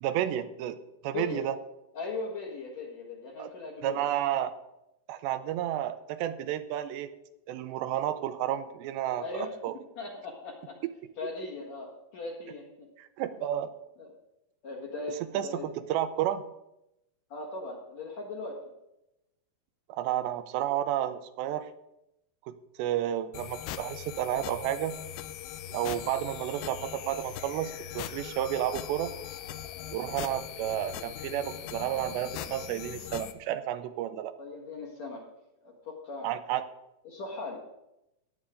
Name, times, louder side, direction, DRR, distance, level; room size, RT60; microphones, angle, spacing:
voice 1, 0.0-0.8 1.0-1.6 3.4-3.5 3.8-4.5 5.1-7.1 7.5-9.8 13.0-13.7 15.3-15.6 15.9-16.4 19.9-21.7 22.5-25.0 25.7-29.1 29.9-34.3 36.2-36.7, right 11 dB, 85° right, 11 dB, 2.9 m, -31 dB
voice 2, 1.1-1.4 1.9-4.0 9.2-9.6 10.0-10.8 11.2-12.9 14.0-14.1 14.6-15.6 17.3-18.6 29.7-30.0 34.4-35.2 35.6-36.3 37.0-37.6, left 3 dB, 55° left, -1 dB, 2.3 m, -39 dB
sound 1, 23.3-33.3, left 11 dB, 80° left, 2.8 m, -40 dB
15.5 x 10.0 x 3.8 m, 0.87 s
omnidirectional pair, 4.9 m